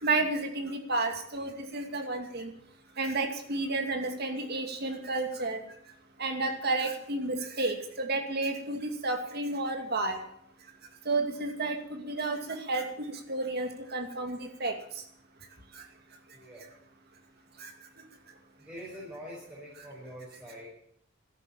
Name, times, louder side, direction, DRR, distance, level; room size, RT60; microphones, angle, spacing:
voice 1, 0.0-2.5 3.0-5.6 6.2-10.2 11.1-14.7 17.6-17.7, right 2 dB, 50° right, 4 dB, 2.5 m, -31 dB
voice 2, 16.3-16.6 18.6-20.7, equal, 10° right, -7 dB, 5.7 m, -44 dB
14.0 x 11.0 x 8.5 m, 0.70 s
head